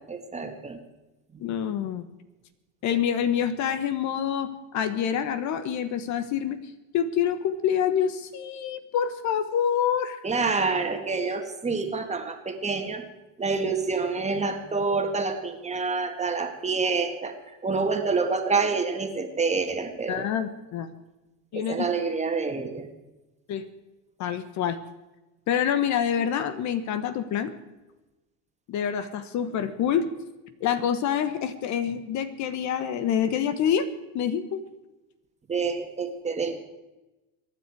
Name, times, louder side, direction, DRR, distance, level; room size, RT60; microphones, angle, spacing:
voice 1, 0.1-0.8 10.2-13.0 13.4-17.4 17.6-20.3 21.5-22.9 35.5-36.6, right 4 dB, 15° right, 5 dB, 1.9 m, -27 dB
voice 2, 1.4-2.0 2.8-10.2 20.1-20.9 21.5-21.9 23.5-23.7 24.2-24.8 25.5-27.5 28.7-30.1 30.6-33.9 34.1-34.6, left 8 dB, 50° left, 12 dB, 1.2 m, -27 dB
23.5 x 9.9 x 4.7 m, 1.0 s
supercardioid pair, 120°, 38 cm